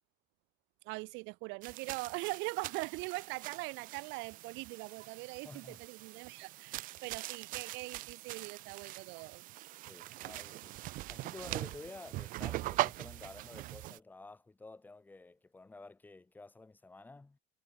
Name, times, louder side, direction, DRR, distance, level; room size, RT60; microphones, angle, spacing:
voice 1, 0.8-9.5, right 26 dB, 70° right, 2.2 m, -41 dB
sound 1, 1.6-14.0, right 17 dB, 45° right, 0.6 m, -42 dB
voice 2, 5.4-5.8 9.9-10.8 11.1-17.4, left 3 dB, 10° left, 2.8 m, -51 dB
cardioid pair, 180°, 19 cm